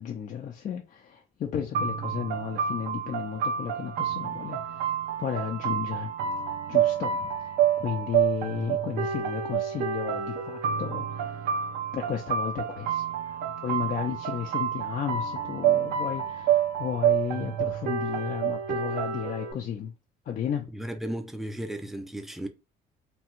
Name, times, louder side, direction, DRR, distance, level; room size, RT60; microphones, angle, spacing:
voice 1, 0.0-4.8 5.2-6.1 6.7-7.3 7.8-11.5 11.9-19.9 20.3-20.7, left 8 dB, 50° left, 0.5 m, -33 dB
sound 1, 1.7-19.5, right 8 dB, 80° right, 0.7 m, -28 dB
voice 2, 20.7-22.5, right 1 dB, ahead, 0.4 m, -35 dB
3.0 x 2.3 x 3.0 m
cardioid pair, 110°, 17 cm